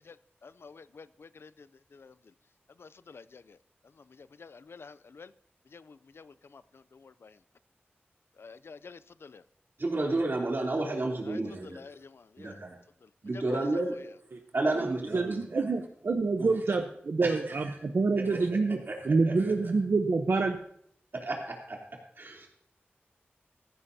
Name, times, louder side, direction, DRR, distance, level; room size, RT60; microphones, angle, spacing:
voice 1, 0.6-2.1 2.8-3.6 4.2-5.3 5.7-7.4 8.4-9.4 11.2-11.4 11.7-12.6 13.3-13.4, left 4 dB, 80° left, 15 dB, 0.4 m, -50 dB
voice 2, 9.8-11.8 12.4-12.7 13.2-14.0 14.5-15.6 16.4-16.5 17.2-17.7 18.2-18.4 18.9-19.0 19.3-19.5 21.1-22.5, right 2 dB, 60° right, -1 dB, 3.2 m, -32 dB
voice 3, 14.8-18.8 19.0-20.6, right 3 dB, 75° right, 5 dB, 0.8 m, -27 dB
15.0 x 15.0 x 2.8 m, 0.67 s
wide cardioid pair, 70°, 4 cm